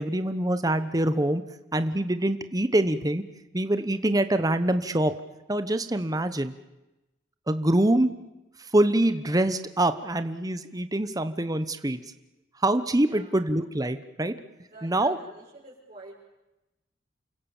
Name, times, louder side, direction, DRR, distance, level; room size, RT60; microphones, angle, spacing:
voice 1, 0.0-1.4 1.7-3.2 3.5-5.1 5.5-6.5 7.5-8.1 8.6-12.0 12.6-14.3 14.8-15.2, right 1 dB, 20° right, 11 dB, 1.0 m, -25 dB
voice 2, 14.7-16.2, right 2 dB, 40° right, -7 dB, 7.0 m, -48 dB
29.0 x 24.0 x 7.2 m, 0.99 s
head